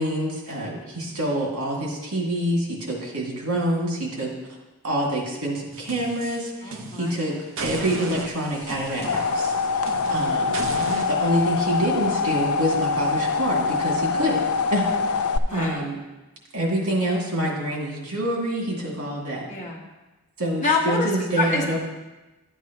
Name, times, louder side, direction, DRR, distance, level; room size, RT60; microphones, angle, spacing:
voice 1, 0.0-4.3 4.8-7.3 7.6-9.5 10.1-10.6 11.1-14.4 14.7-15.2 15.5-16.0 16.5-19.5 20.4-21.8, right 1 dB, 90° right, -2 dB, 2.3 m, -26 dB
sound 1, 5.7-7.2 7.6-11.1, right 2 dB, 60° right, 0.8 m, -34 dB
voice 2, 6.6-7.4 10.1-10.6 15.5-15.8 19.5-19.8 20.6-21.1 21.4-21.8, left 3 dB, 35° left, -2 dB, 1.5 m, -28 dB
sound 2, 8.7-15.4, left 4 dB, 80° left, 0.5 m, -24 dB
11.5 x 8.2 x 3.0 m, 1.1 s
head